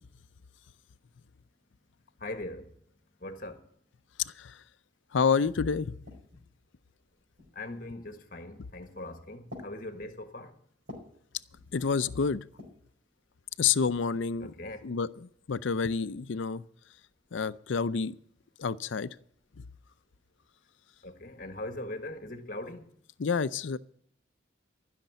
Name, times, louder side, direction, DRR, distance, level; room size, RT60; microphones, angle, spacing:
voice 1, 2.2-2.7 3.2-3.6 7.5-10.6 14.4-14.8 21.0-22.9, left 1 dB, 45° left, 1.5 m, -40 dB
sound 1, 5.0-5.1 5.4-6.5 7.3-7.8 8.7-9.0 9.5-11.2 11.5-12.1 12.5-12.9 13.6-14.6, left 2 dB, 60° right, 4.6 m, -50 dB
voice 2, 5.1-6.0 11.7-12.4 13.6-14.5 14.8-16.6 17.3-18.1 18.6-19.1 23.2-23.8, left 5 dB, 80° left, 0.5 m, -28 dB
15.0 x 6.6 x 9.2 m
head